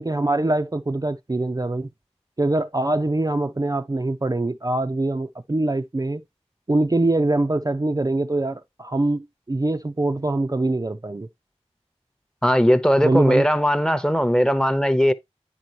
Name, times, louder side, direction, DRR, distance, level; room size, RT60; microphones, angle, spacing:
voice 1, 0.0-1.9 2.4-6.2 6.7-11.3 13.0-13.5, right 2 dB, 30° right, 0.5 m, -23 dB
voice 2, 12.4-15.1, equal, 5° left, 0.8 m, -19 dB
8.9 x 5.2 x 2.9 m
wide cardioid pair, 45°, 12 cm